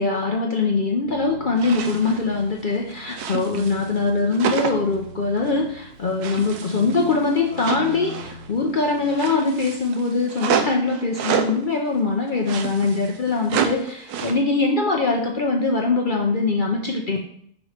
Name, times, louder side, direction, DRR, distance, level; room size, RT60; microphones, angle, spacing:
voice 1, 0.0-17.2, left 3 dB, 55° left, 1 dB, 0.5 m, -22 dB
Keyboard (musical), 1.0-9.4, equal, 55° right, 2.4 m, -42 dB
sound 1, 1.6-2.2 2.6-4.0 4.3-5.0 5.4-5.6 6.2-8.5 8.8-11.6 12.3-14.3, right 7 dB, 80° right, 1.2 m, -29 dB
6.1 x 3.1 x 4.9 m, 0.66 s
omnidirectional pair, 1.7 m